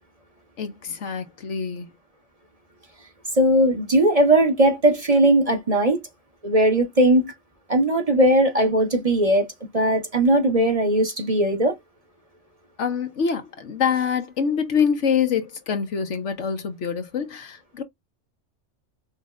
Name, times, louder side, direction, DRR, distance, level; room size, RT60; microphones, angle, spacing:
voice 1, 0.6-1.9 12.8-17.8, left 6 dB, 70° left, 1.3 m, -25 dB
voice 2, 3.4-6.0 6.4-7.3 7.7-9.5 9.7-11.8, right 1 dB, 30° right, 1.4 m, -19 dB
5.7 x 2.8 x 2.5 m
omnidirectional pair, 1.3 m